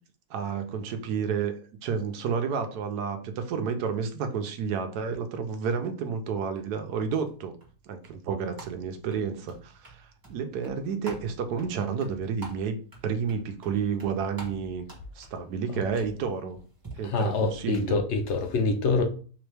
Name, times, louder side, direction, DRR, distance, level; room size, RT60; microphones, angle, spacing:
voice 1, 0.3-1.5 1.8-7.5 7.9-12.8 13.0-14.9 15.2-16.6 17.0-18.0, right 6 dB, 75° right, 1.1 m, -30 dB
sound 1, 7.3-16.9, right 3 dB, 15° right, 1.0 m, -49 dB
voice 2, 17.0-19.0, left 3 dB, 75° left, 0.6 m, -26 dB
3.8 x 3.0 x 3.3 m
omnidirectional pair, 1.8 m